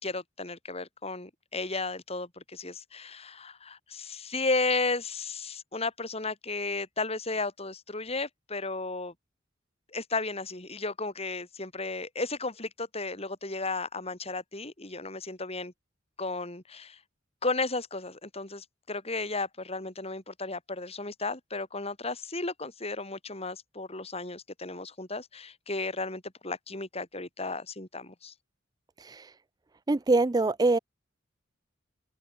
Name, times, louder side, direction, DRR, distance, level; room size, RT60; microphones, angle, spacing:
voice 1, 0.0-9.1 9.9-15.7 16.2-17.0 17.4-28.3, left 3 dB, 30° left, 4.8 m, -34 dB
voice 2, 29.0-29.3 29.9-30.8, right 2 dB, 20° right, 0.4 m, -24 dB
open air
head